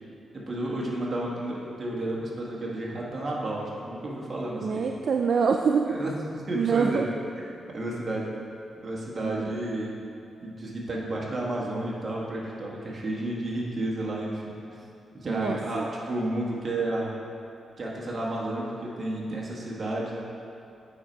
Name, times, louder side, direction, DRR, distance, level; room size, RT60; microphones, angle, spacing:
voice 1, 0.3-4.8 5.9-6.1 6.5-7.1 7.7-8.3 8.8-10.0 10.4-14.6 15.1-17.2 17.8-20.2, right 1 dB, 35° right, -4 dB, 1.5 m, -31 dB
voice 2, 4.5-6.0 6.5-7.1 9.2-9.5 15.3-15.9, right 5 dB, 55° right, 3 dB, 0.3 m, -25 dB
8.5 x 5.2 x 4.5 m, 2.7 s
wide cardioid pair, 125°, 0 cm